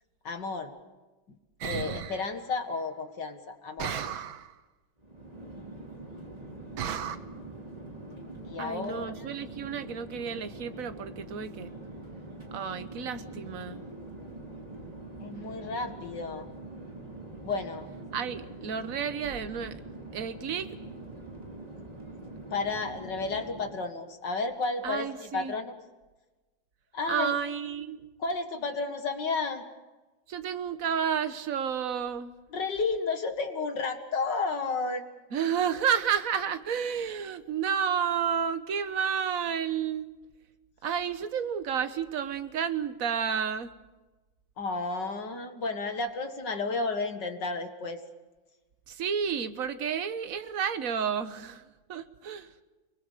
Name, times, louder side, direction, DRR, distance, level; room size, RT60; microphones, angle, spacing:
voice 1, 0.2-0.7 1.3-1.4 1.6-4.3 8.4-9.3 15.2-16.5 17.4-17.9 22.5-25.8 26.9-27.3 28.2-29.6 32.5-35.0 44.6-48.0, left 3 dB, 55° left, 7 dB, 2.4 m, -32 dB
sound 1, 1.6-2.3 3.8-4.5 6.8-7.2, right 9 dB, 65° right, 1.8 m, -34 dB
Chatter / Fixed-wing aircraft airplane, 5.0-23.9, right 2 dB, 15° right, 3.3 m, -44 dB
voice 2, 8.6-11.7 12.5-13.8 18.1-19.8 20.1-20.8 24.8-25.6 27.1-28.1 30.3-32.3 35.3-40.1 40.8-43.8 48.9-52.5, right 7 dB, 45° right, 10 dB, 1.4 m, -31 dB
30.0 x 21.0 x 6.8 m, 1.2 s
omnidirectional pair, 2.4 m